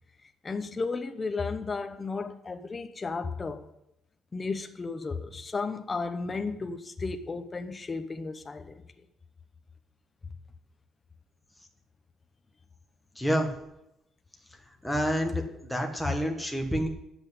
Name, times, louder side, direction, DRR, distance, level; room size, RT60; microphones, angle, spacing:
voice 1, 0.4-3.7 4.3-8.8, left 4 dB, 20° left, 0.8 m, -34 dB
voice 2, 13.2-13.5 14.8-16.9, equal, ahead, 1.6 m, -28 dB
8.8 x 8.0 x 9.3 m
cardioid pair, 165°, 0 cm